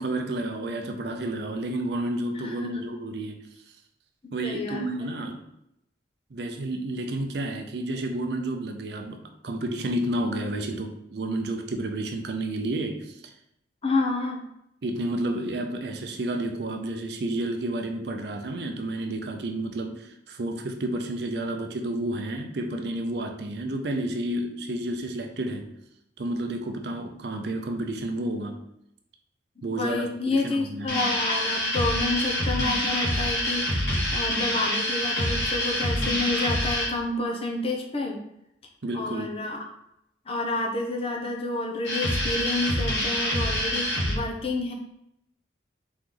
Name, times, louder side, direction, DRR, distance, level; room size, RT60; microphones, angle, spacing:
voice 1, 0.0-3.4 4.3-5.4 6.3-13.3 14.8-25.7 26.2-28.6 29.6-30.9 38.8-39.4, right 1 dB, 65° right, 4 dB, 0.5 m, -31 dB
voice 2, 2.4-2.9 4.2-4.9 13.8-14.4 29.6-38.2 38.9-39.6 40.3-44.7, left 2 dB, 30° left, 1 dB, 0.6 m, -29 dB
sound 1, 30.9-36.9 41.8-44.2, equal, 80° left, 1.6 m, -26 dB
3.9 x 3.1 x 3.7 m, 0.79 s
head